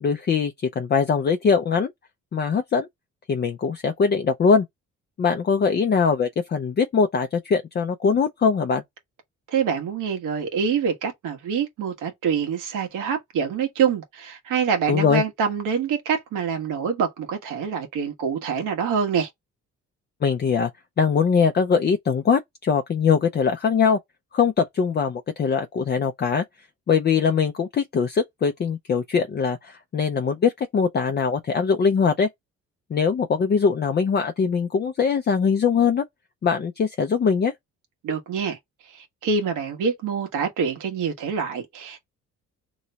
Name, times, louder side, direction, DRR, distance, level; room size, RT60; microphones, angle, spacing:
voice 1, 0.0-1.9 2.3-2.9 3.3-4.7 5.2-8.8 14.9-15.2 20.2-20.7 21.0-24.0 24.3-26.4 26.9-32.3 32.9-36.0 36.4-37.5, left 6 dB, 35° left, 0.5 m, -22 dB
voice 2, 9.5-19.3 38.0-38.6 38.9-42.1, right 6 dB, 85° right, 1.3 m, -25 dB
3.0 x 2.1 x 4.0 m
cardioid pair, 90°, 30 cm